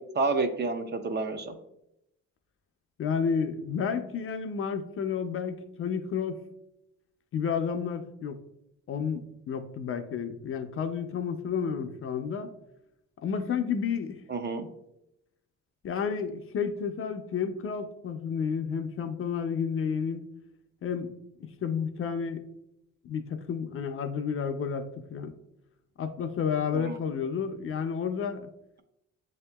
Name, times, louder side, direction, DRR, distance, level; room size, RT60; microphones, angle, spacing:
voice 1, 0.1-1.5 14.3-14.7 26.7-27.0, right 3 dB, 35° right, 8 dB, 0.5 m, -29 dB
voice 2, 3.0-6.4 7.3-8.4 8.9-12.5 13.2-14.2 15.8-20.2 20.8-21.1 21.4-22.4 23.0-25.3 26.0-28.5, left 6 dB, 45° left, 7 dB, 0.4 m, -31 dB
7.3 x 2.8 x 2.2 m, 0.83 s
cardioid pair, 90°, 30 cm